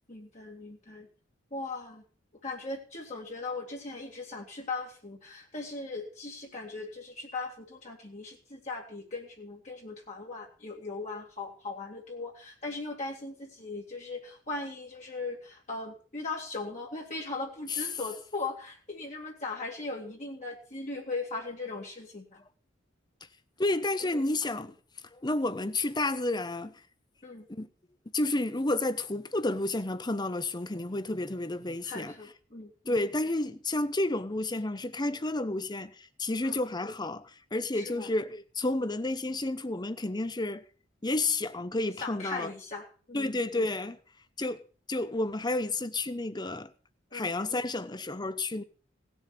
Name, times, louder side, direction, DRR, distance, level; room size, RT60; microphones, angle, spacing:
voice 1, 0.1-1.1 1.5-2.0 2.4-22.4 27.2-27.4 31.8-32.7 36.4-36.6 37.7-38.1 42.0-43.4 47.1-47.3, left 3 dB, 40° left, 2.3 m, -39 dB
voice 2, 23.6-24.7 25.1-26.7 27.5-27.7 28.1-32.1 32.9-40.6 41.0-42.5 43.1-44.0 44.4-44.6 44.9-46.7 47.1-48.6, left 2 dB, 20° left, 0.9 m, -31 dB
18.0 x 7.2 x 6.6 m
head